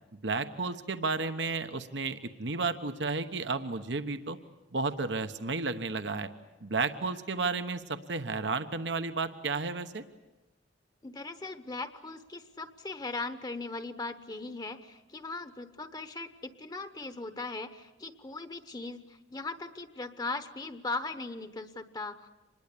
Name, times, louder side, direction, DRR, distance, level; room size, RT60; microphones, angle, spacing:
voice 1, 0.1-4.4 4.7-6.3 6.6-10.0, right 4 dB, 75° right, 9 dB, 1.1 m, -32 dB
voice 2, 11.0-22.3, left 3 dB, 25° left, 10 dB, 0.9 m, -39 dB
26.0 x 21.0 x 8.5 m, 1.0 s
head